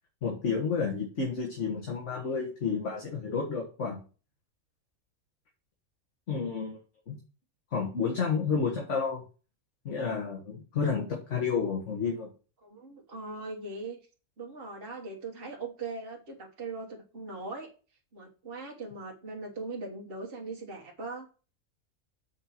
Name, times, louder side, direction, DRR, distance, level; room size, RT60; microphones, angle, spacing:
voice 1, 0.2-4.0 6.3-6.8 7.1-7.2 7.7-9.2 9.9-12.3, left 5 dB, 60° left, -1 dB, 1.8 m, -30 dB
voice 2, 12.6-14.0 14.4-17.7 18.1-21.3, right 3 dB, 45° right, -2 dB, 1.6 m, -40 dB
7.3 x 4.4 x 5.8 m, 0.36 s
omnidirectional pair, 1.5 m